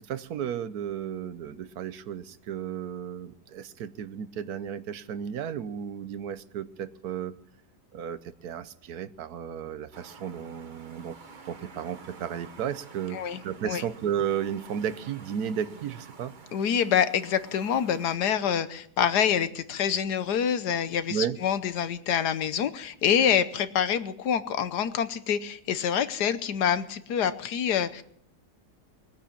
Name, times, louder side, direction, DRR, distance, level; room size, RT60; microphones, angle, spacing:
voice 1, 0.1-7.4 7.9-11.2 11.5-16.3 21.1-21.4, right 8 dB, 70° right, 14 dB, 1.2 m, -33 dB
sound 1, 9.9-18.2, right 4 dB, 35° right, 1.0 m, -49 dB
voice 2, 16.5-28.0, left 8 dB, 80° left, 12 dB, 1.5 m, -26 dB
20.5 x 9.3 x 7.2 m, 0.69 s
omnidirectional pair, 1.7 m